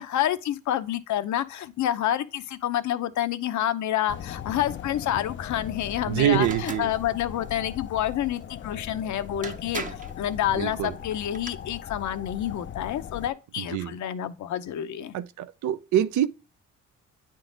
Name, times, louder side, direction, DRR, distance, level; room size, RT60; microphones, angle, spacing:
voice 1, 0.0-15.1, left 11 dB, 70° left, 0.8 m, -28 dB
sound 1, 4.1-13.3, left 9 dB, 40° left, 0.4 m, -39 dB
voice 2, 6.1-6.9 10.5-10.9 13.6-13.9 15.1-16.3, right 11 dB, 75° right, 0.6 m, -25 dB
sound 2, 6.4-6.9 8.9-9.0 9.4-10.2 11.1-11.5, right 4 dB, 25° right, 0.8 m, -37 dB
9.0 x 3.8 x 3.9 m
cardioid pair, 90°, 30 cm